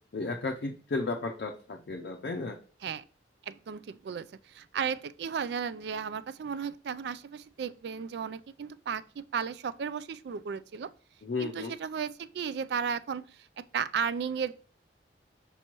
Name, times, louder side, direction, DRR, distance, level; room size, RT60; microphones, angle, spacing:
voice 1, 0.1-2.6 11.2-11.7, left 3 dB, 60° left, 0.5 m, -34 dB
voice 2, 3.4-10.9 11.4-14.5, right 6 dB, 65° right, 0.3 m, -34 dB
6.0 x 5.4 x 2.9 m
head